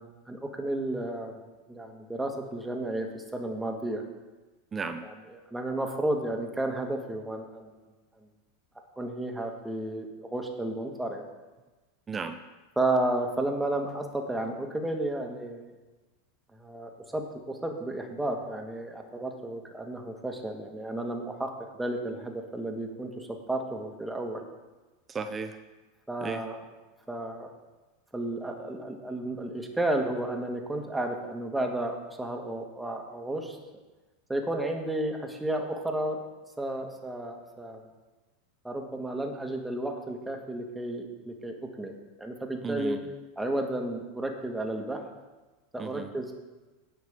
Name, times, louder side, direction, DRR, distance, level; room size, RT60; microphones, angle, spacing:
voice 1, 0.0-1.3 1.7-4.0 5.0-7.7 9.0-11.3 12.8-15.7 16.6-24.4 26.1-26.6 27.1-27.5 28.1-33.6 34.3-36.2 36.6-37.8 38.6-41.9 42.2-43.0 43.4-45.0 45.7-46.3, right 1 dB, 5° right, 3 dB, 1.8 m, -32 dB
voice 2, 4.7-5.0 12.1-12.4 25.1-25.6 26.2-26.4 42.6-43.0 45.8-46.1, right 5 dB, 25° right, 9 dB, 0.7 m, -34 dB
17.5 x 5.9 x 3.8 m, 1.2 s
hypercardioid pair, 95°, 0 cm